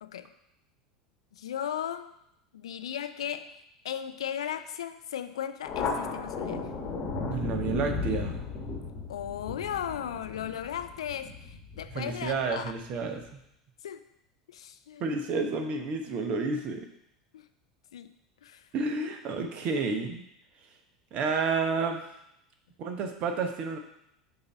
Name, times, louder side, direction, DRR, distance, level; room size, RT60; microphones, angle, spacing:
voice 1, 1.3-2.1 2.5-3.5 3.8-6.7 9.1-12.7 13.8-14.0 14.5-15.0 17.3-17.5 17.9-18.1 18.4-18.7, left 9 dB, 75° left, 10 dB, 0.4 m, -36 dB
Thunder, 5.6-12.7, left 4 dB, 40° left, 1.1 m, -35 dB
voice 2, 7.3-8.4 11.9-13.4 15.0-16.9 18.7-20.2 21.1-22.0 22.8-23.8, right 4 dB, 45° right, 5 dB, 0.9 m, -30 dB
6.7 x 2.8 x 5.6 m, 0.78 s
figure-of-eight pair, 80°, 3 cm